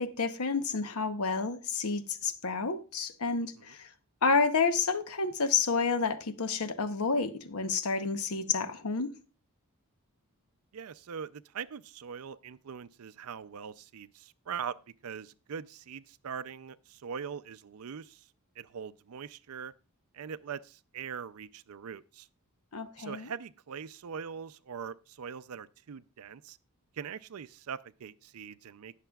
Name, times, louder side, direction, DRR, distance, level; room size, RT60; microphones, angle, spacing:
voice 1, 0.0-3.9 4.2-9.1 22.7-23.3, left 4 dB, 75° left, 0.9 m, -30 dB
voice 2, 10.7-14.7 15.0-18.2 18.6-19.7 20.1-22.3 23.0-26.6 27.0-28.9, right 7 dB, 70° right, 0.5 m, -42 dB
19.0 x 6.7 x 2.3 m
head